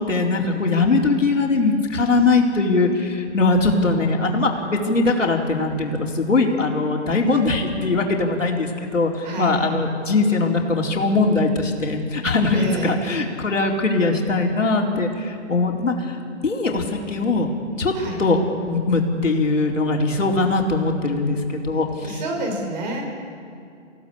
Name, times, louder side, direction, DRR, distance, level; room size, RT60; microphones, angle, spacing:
voice 1, 0.0-16.2 16.4-17.5 17.8-17.9 18.2-18.4 18.7-22.2 22.5-22.6, left 3 dB, 85° left, 1 dB, 4.4 m, -21 dB
voice 2, 3.6-4.1 9.2-9.6 12.5-13.0 17.9-18.2 22.0-23.0, right 2 dB, 35° right, 2 dB, 5.8 m, -29 dB
28.0 x 17.0 x 8.7 m, 2.5 s
hypercardioid pair, 155°, 37 cm